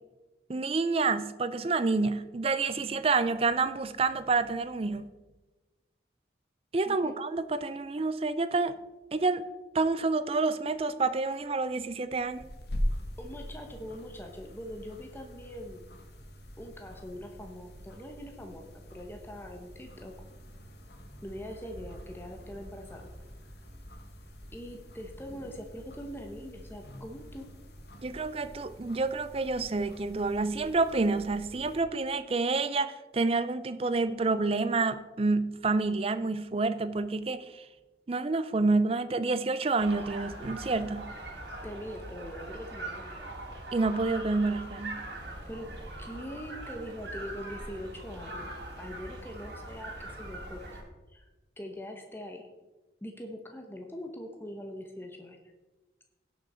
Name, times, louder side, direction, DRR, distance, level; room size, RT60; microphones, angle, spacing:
voice 1, 0.5-5.1 6.7-8.8 9.1-9.4 9.7-12.4 28.0-37.7 38.1-41.1 43.7-45.0, right 3 dB, 30° right, 13 dB, 0.4 m, -28 dB
voice 2, 6.8-7.2 13.2-15.9 16.6-20.1 21.2-23.1 24.5-27.5 41.6-43.1 45.5-45.7 46.0-48.5 48.8-50.6 51.1-51.3 51.6-52.5 53.0-55.4, equal, 10° left, 3 dB, 1.0 m, -42 dB
sound 1, 12.1-31.8, equal, 55° left, 1.5 m, -43 dB
sound 2, 39.8-50.8, right 2 dB, 60° right, 3.2 m, -42 dB
17.0 x 6.2 x 4.3 m, 1.1 s
head